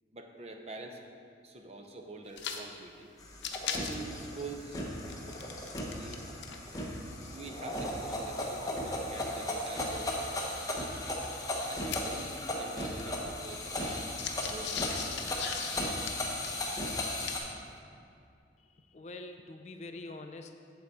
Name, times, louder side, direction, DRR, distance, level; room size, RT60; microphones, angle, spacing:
voice 1, 0.1-1.0 1.4-3.1 3.7-4.8 5.9-6.3 7.3-10.2 11.7-14.1 14.4-15.5, right 2 dB, 35° right, 3 dB, 0.7 m, -45 dB
sound 1, 2.3-2.6 2.9-3.0 3.3-6.2 6.4-10.1 10.8-12.5 12.7-17.6, left 7 dB, 80° left, 0.7 m, -41 dB
sound 2, 3.2-17.4, left 1 dB, 20° left, 0.9 m, -36 dB
voice 2, 18.8-20.5, left 2 dB, 40° left, 6 dB, 0.4 m, -45 dB
7.9 x 7.7 x 4.2 m, 2.4 s
head